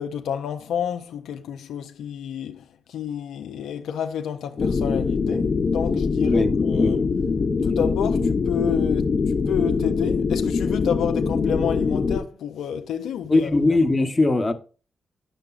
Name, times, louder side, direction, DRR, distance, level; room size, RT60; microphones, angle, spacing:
voice 1, 0.0-7.0 7.6-13.5, left 8 dB, 85° left, 0.4 m, -29 dB
sound 1, 4.6-12.2, left 5 dB, 55° left, 0.7 m, -23 dB
voice 2, 6.2-6.9 7.7-7.9 8.2-8.3 13.3-14.5, left 2 dB, 30° left, 0.9 m, -21 dB
8.8 x 6.8 x 2.4 m
supercardioid pair, 50°, 0 cm